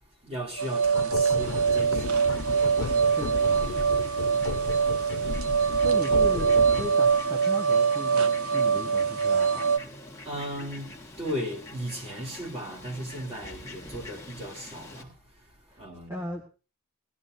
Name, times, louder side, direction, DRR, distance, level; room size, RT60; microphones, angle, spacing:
voice 1, 0.2-4.7 5.2-5.7 10.2-16.3, equal, 30° right, 3.2 m, -38 dB
sound 1, 0.6-9.8, right 6 dB, 90° right, 0.9 m, -24 dB
sound 2, 0.9-7.1, left 3 dB, 85° left, 0.9 m, -34 dB
Fowl, 1.4-15.0, left 2 dB, 15° left, 1.6 m, -45 dB
voice 2, 3.0-3.6 5.8-9.7 15.7-15.8 16.1-16.4, equal, 15° right, 1.3 m, -37 dB
18.0 x 13.0 x 2.7 m
head